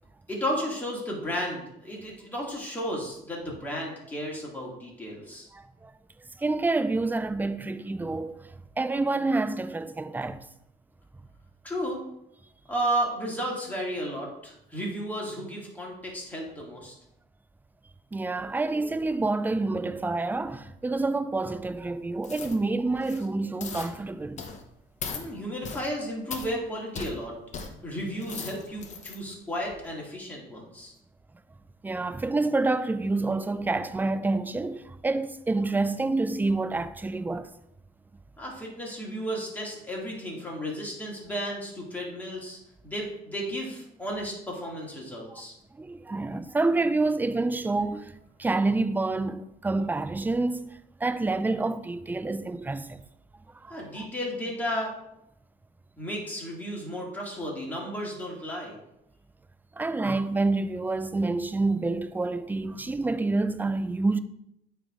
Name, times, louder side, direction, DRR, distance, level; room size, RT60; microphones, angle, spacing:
voice 1, 0.3-5.5 11.6-12.0 12.7-16.9 25.1-27.3 27.8-30.9 38.4-42.6 42.8-45.5 53.7-54.9 56.0-58.8, equal, 10° left, 2.1 m, -33 dB
voice 2, 5.5-5.9 6.4-10.4 18.1-24.4 31.8-37.5 45.3-45.4 45.7-53.0 53.6-54.1 59.8-64.2, right 3 dB, 10° right, 0.4 m, -28 dB
sound 1, 22.2-22.6 23.0-23.3 23.6-23.9 24.4-24.6 25.0-25.2 25.6-25.9 26.3-26.5 26.9-27.1 27.5-27.7 28.1-29.2 29.6-29.7, left 5 dB, 45° left, 0.9 m, -38 dB
9.0 x 3.4 x 3.6 m
cardioid pair, 110°, 17 cm